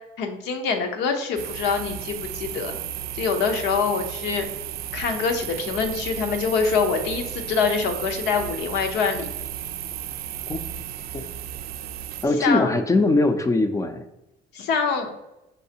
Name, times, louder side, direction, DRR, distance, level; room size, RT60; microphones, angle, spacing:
voice 1, 0.2-2.7 3.1-4.5 4.9-9.3 12.4-12.7 14.5-15.1, left 5 dB, 85° left, 5 dB, 0.7 m, -25 dB
sound 1, 1.4-12.3, right 11 dB, 70° right, 0.4 m, -34 dB
voice 2, 12.2-14.0, left 2 dB, 20° left, 8 dB, 0.4 m, -21 dB
5.5 x 3.2 x 2.8 m, 0.91 s
cardioid pair, 110°, 17 cm